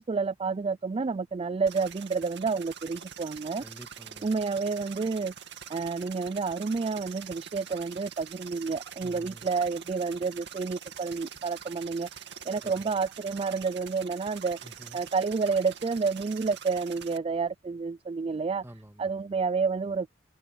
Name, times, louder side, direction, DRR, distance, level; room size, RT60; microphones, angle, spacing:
voice 1, 0.0-3.6 4.2-5.3 5.7-14.6 14.9-18.6 19.0-20.1, right 4 dB, 30° right, 0.4 m, -30 dB
sound 1, 1.7-17.2, right 8 dB, 65° right, 2.3 m, -45 dB
voice 2, 3.6-4.3 9.0-9.5 12.6-12.9 14.6-15.0 18.6-19.1, right 1 dB, 15° right, 2.2 m, -48 dB
head